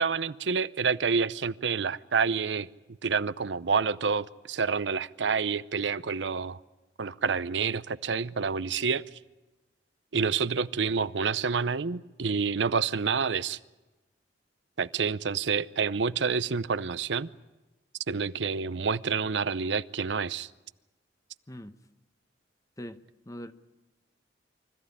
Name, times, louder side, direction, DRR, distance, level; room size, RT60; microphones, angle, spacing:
voice 1, 0.0-2.7 3.0-6.6 7.0-9.1 10.1-13.6 14.8-17.3 18.1-20.5, right 5 dB, 80° right, 0.6 m, -28 dB
voice 2, 22.8-23.5, equal, 20° left, 1.0 m, -42 dB
24.5 x 15.0 x 9.9 m
head